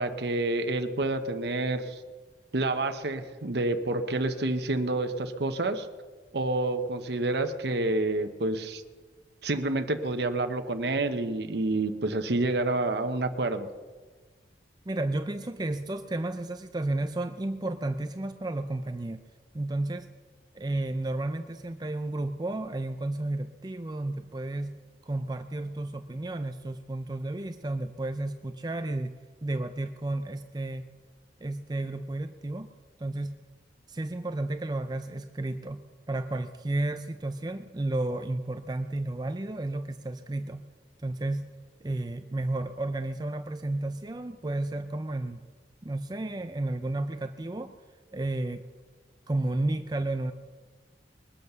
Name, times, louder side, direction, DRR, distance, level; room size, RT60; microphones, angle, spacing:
voice 1, 0.0-2.0 2.5-5.9 6.3-8.8 9.4-13.7, right 2 dB, 65° right, 7 dB, 0.9 m, -28 dB
voice 2, 14.9-19.2 19.5-20.1 20.5-24.8 25.0-29.1 29.4-30.9 31.4-32.7 33.0-33.4 33.9-40.7 41.0-41.5 41.8-45.4 45.8-47.7 48.1-48.6 49.3-50.3, right 2 dB, 20° right, 9 dB, 0.5 m, -32 dB
21.5 x 8.1 x 6.7 m, 1.4 s
head